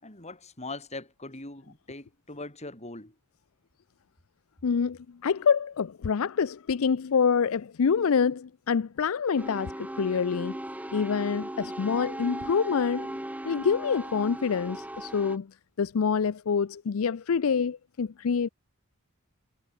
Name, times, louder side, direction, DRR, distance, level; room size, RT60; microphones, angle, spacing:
voice 1, 0.0-3.1, left 2 dB, 30° left, 6.4 m, -41 dB
voice 2, 4.6-10.6 10.9-13.2 13.4-15.5 15.8-18.5, left 6 dB, 65° left, 0.5 m, -26 dB
sound 1, 9.4-15.4, right 1 dB, 5° right, 3.0 m, -38 dB
head